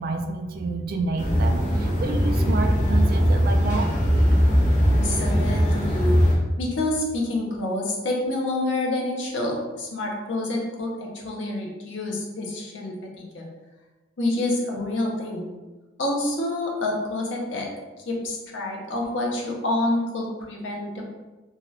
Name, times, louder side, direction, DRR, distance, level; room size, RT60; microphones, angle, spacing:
voice 1, 0.0-3.9 4.3-4.4, right 3 dB, 50° right, 5 dB, 0.3 m, -29 dB
sound 1, 1.2-6.4, equal, 40° left, 0.7 m, -20 dB
voice 2, 4.9-6.2 6.6-13.5 14.2-15.5 16.0-17.7 18.1-21.1, left 2 dB, 85° left, -1 dB, 0.7 m, -28 dB
2.8 x 2.3 x 3.1 m, 1.2 s
head